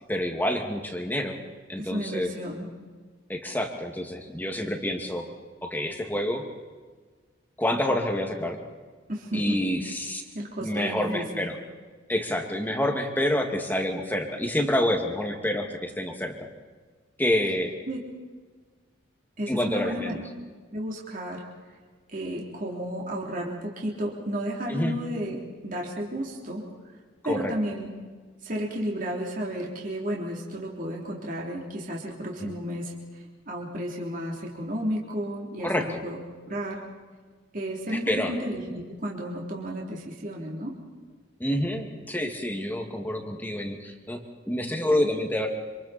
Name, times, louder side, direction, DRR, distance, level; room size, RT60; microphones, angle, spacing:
voice 1, 0.1-1.4 1.7-2.3 3.3-5.2 5.6-6.4 7.6-8.6 9.3-10.2 10.6-11.6 12.1-16.3 17.2-17.7 19.5-20.2 24.7-24.9 27.2-27.5 32.4-32.5 35.6-36.0 38.1-38.3 41.4-44.2 44.5-45.5, left 1 dB, 10° left, 2 dB, 2.4 m, -27 dB
voice 2, 1.8-2.7 9.1-9.9 10.3-11.5 17.9-18.0 19.4-20.2 20.7-21.4 22.1-25.4 25.6-26.6 27.2-27.9 28.4-36.2 36.5-36.8 37.5-40.7, equal, 40° right, -2 dB, 3.5 m, -33 dB
27.5 x 27.0 x 4.4 m, 1.5 s
head